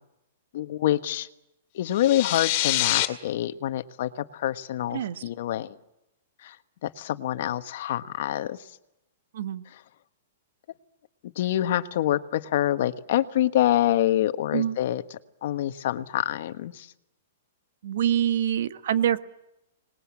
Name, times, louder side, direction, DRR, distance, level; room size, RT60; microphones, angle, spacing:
voice 1, 0.5-1.3 1.7-5.7 6.4-6.6 6.8-8.7 11.2-15.0 15.4-16.9, left 12 dB, 55° left, 11 dB, 1.3 m, -26 dB
sound 1, 1.9-3.1, left 15 dB, 35° left, 2.3 m, -25 dB
voice 2, 4.9-5.2 9.3-9.6 14.5-14.8 17.8-19.2, right 10 dB, 60° right, 12 dB, 1.4 m, -25 dB
26.0 x 20.5 x 8.6 m, 0.88 s
hypercardioid pair, 165°, 0 cm